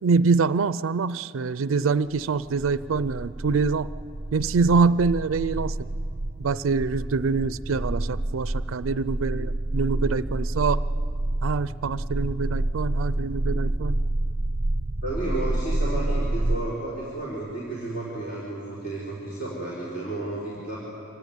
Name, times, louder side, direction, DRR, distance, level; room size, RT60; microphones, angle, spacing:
voice 1, 0.0-3.9 4.3-5.8 6.4-10.8 11.4-14.0, right 4 dB, 75° right, 16 dB, 0.4 m, -25 dB
sound 1, 2.2-16.6, right 1 dB, 35° right, 0.7 m, -28 dB
voice 2, 15.0-20.8, right 2 dB, 50° left, -7 dB, 4.4 m, -32 dB
25.5 x 16.5 x 9.5 m, 2.8 s
head